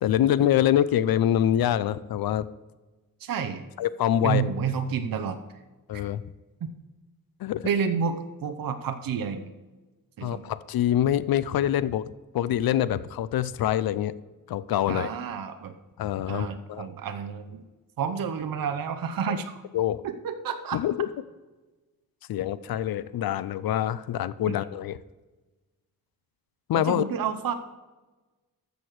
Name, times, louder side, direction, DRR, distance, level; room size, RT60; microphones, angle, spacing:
voice 1, 0.0-2.5 3.8-4.4 5.9-6.2 7.4-7.7 10.2-12.0 12.3-14.1 14.5-15.1 16.0-16.9 19.7-20.0 20.7-21.1 22.3-25.0 26.7-27.1, left 11 dB, 85° left, 17 dB, 0.5 m, -25 dB
voice 2, 3.2-3.6 4.2-5.4 5.9-6.0 7.6-8.2 8.4-9.5 10.2-10.5 14.9-15.7 16.3-17.6 18.0-19.6 20.0-20.8 26.7-27.5, right 7 dB, 75° right, 7 dB, 0.8 m, -30 dB
13.5 x 6.6 x 4.7 m, 1.2 s
wide cardioid pair, 115°, 35 cm